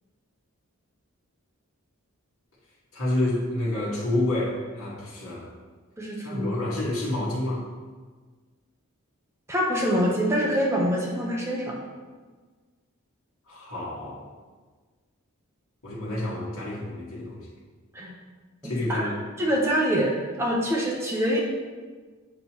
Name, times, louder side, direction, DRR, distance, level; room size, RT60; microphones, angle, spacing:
voice 1, 2.9-5.5 6.2-7.6 13.5-14.2 15.8-17.4 18.6-19.2, left 1 dB, 75° left, -5 dB, 1.8 m, -28 dB
voice 2, 6.0-6.5 9.5-11.8 17.9-18.1 18.6-19.1 19.4-21.4, equal, 10° right, -3 dB, 0.8 m, -25 dB
7.7 x 5.4 x 3.0 m, 1.4 s
head